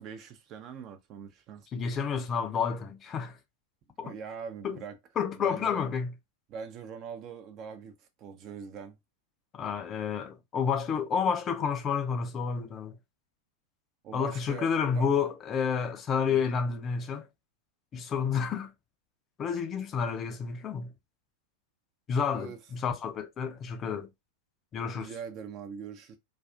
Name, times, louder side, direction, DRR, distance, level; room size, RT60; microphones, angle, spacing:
voice 1, 0.0-1.7 4.0-5.0 5.4-5.8 6.5-9.0 14.0-15.1 16.3-16.4 22.3-22.6 24.9-26.2, right 7 dB, 35° right, 0.4 m, -42 dB
voice 2, 1.7-3.4 4.0-4.1 4.6-4.8 5.2-6.1 9.5-13.0 14.1-17.3 17.9-18.7 19.4-20.9 22.1-24.1 24.7-25.1, left 6 dB, 25° left, 0.4 m, -30 dB
2.4 x 2.3 x 2.3 m
figure-of-eight pair, 90°, 0 cm